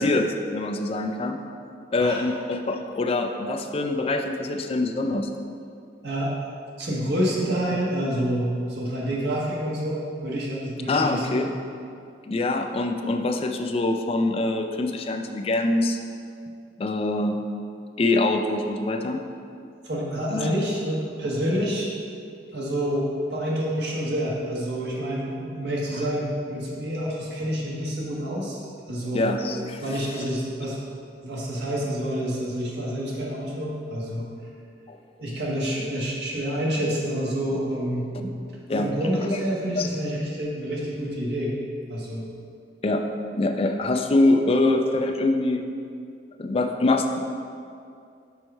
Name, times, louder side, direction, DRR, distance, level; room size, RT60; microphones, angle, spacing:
voice 1, 0.0-1.4 1.9-5.3 9.1-9.2 10.9-11.5 12.3-16.0 16.8-17.5 18.0-19.2 20.3-20.5 29.1-29.8 34.9-35.0 38.7-38.9 39.2-39.4 39.8-39.9 42.8-43.1 43.3-45.6 46.4-47.2, left 2 dB, 35° left, 5 dB, 0.4 m, -24 dB
voice 2, 6.8-11.5 19.8-21.9 22.5-29.3 29.8-30.8 31.2-34.3 35.2-38.3 38.8-41.6 41.9-42.3, equal, 70° right, -4 dB, 1.3 m, -28 dB
5.4 x 4.7 x 4.4 m, 2.4 s
head